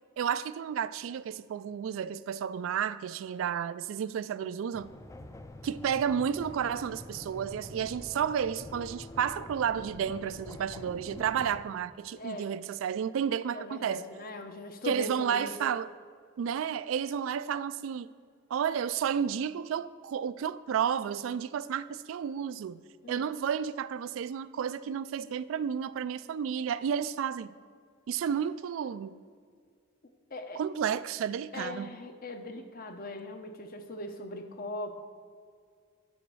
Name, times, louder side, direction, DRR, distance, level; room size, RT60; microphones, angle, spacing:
voice 1, 0.2-4.9 5.6-14.0 14.9-15.9 16.4-18.1 18.5-22.8 23.1-27.5 28.1-29.1 30.6-31.9, right 8 dB, 85° right, 0.3 m, -32 dB
sound 1, 4.7-11.6, left 1 dB, 15° left, 0.4 m, -46 dB
voice 2, 12.1-12.5 13.5-15.5 23.0-23.3 30.3-30.6 31.5-34.9, left 2 dB, 50° left, 0.8 m, -40 dB
9.8 x 4.1 x 6.1 m
head